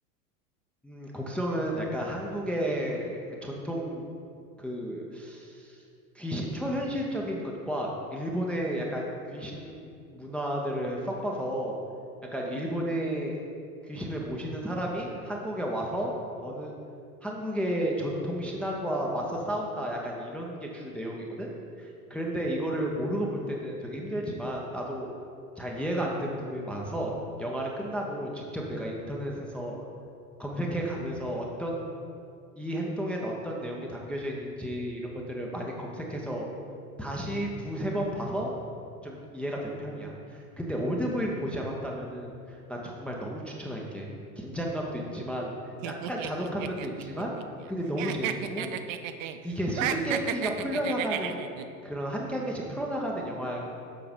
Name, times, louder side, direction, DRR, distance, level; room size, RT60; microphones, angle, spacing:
voice 1, 0.8-4.0 4.6-5.8 6.2-11.8 12.3-13.4 13.8-16.1 16.4-16.7 17.2-21.5 21.8-25.1 25.6-27.1 27.4-29.9 30.4-31.9 32.6-36.5 37.0-38.6 39.0-44.1 44.4-45.5 45.8-47.4 47.7-48.7 49.4-51.4 51.8-53.7, equal, 5° left, -1 dB, 0.3 m, -32 dB
sound 1, 45.8-47.7 48.0-49.4 49.7-51.6, right 10 dB, 55° right, 0.6 m, -33 dB
7.2 x 4.7 x 5.0 m, 2.4 s
hypercardioid pair, 90°, 46 cm